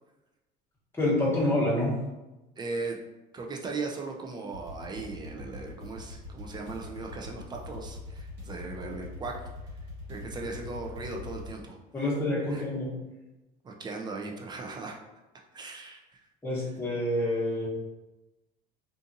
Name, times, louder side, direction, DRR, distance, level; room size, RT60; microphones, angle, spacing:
voice 1, 1.0-1.9 11.9-12.9 16.4-17.7, left 1 dB, 15° left, -7 dB, 1.1 m, -27 dB
voice 2, 2.6-3.0 3.3-9.5 10.1-11.8 12.5-12.6 13.6-15.0 15.5-16.2, right 3 dB, 25° right, 1 dB, 0.4 m, -38 dB
sound 1, 4.5-11.5, left 2 dB, 65° right, 1.2 m, -43 dB
2.6 x 2.5 x 2.6 m, 1.0 s
cardioid pair, 115°, 18 cm